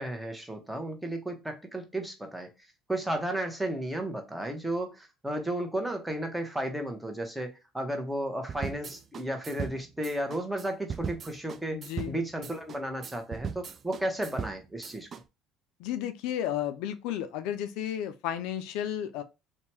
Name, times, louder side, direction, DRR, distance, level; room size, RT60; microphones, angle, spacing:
voice 1, 0.0-2.5 2.9-15.1, right 1 dB, 10° right, 0.9 m, -33 dB
sound 1, 8.5-15.2, right 6 dB, 45° right, 0.3 m, -39 dB
voice 2, 11.7-12.2 15.8-19.2, left 10 dB, 75° left, 0.3 m, -33 dB
2.7 x 2.2 x 3.0 m
hypercardioid pair, 75°, 0 cm